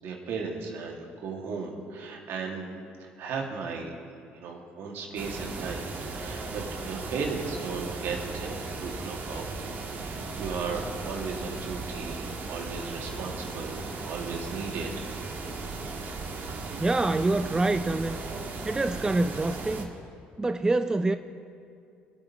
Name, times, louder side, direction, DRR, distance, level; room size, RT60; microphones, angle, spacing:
voice 1, 0.0-2.7 3.0-3.9 4.3-5.9 6.1-9.5 10.1-14.9, right 5 dB, 70° right, 1 dB, 2.1 m, -36 dB
sound 1, 5.2-19.8, right 3 dB, 50° right, 1.6 m, -36 dB
voice 2, 16.8-18.2 18.6-19.9 20.4-21.2, right 2 dB, 15° right, 10 dB, 0.4 m, -26 dB
24.5 x 8.8 x 3.0 m, 2.5 s
supercardioid pair, 80°, 4 cm